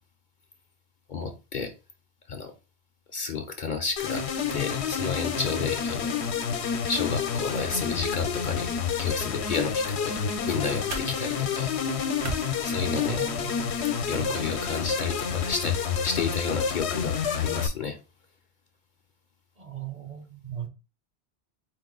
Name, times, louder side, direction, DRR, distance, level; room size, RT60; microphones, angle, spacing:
voice 1, 1.1-1.7 2.3-2.5 3.1-4.2 4.5-6.2 6.9-8.7 9.0-10.2 10.5-11.7 12.6-13.3 14.1-18.0, left 5 dB, 55° left, 0.7 m, -31 dB
sound 1, 4.0-17.7, left 7 dB, 80° left, 0.9 m, -29 dB
sound 2, 9.8-13.7, right 2 dB, 80° right, 1.3 m, -41 dB
voice 2, 12.8-13.8 14.0-14.6 19.6-20.7, right 9 dB, 35° right, 0.9 m, -38 dB
4.6 x 2.5 x 3.8 m
omnidirectional pair, 1.1 m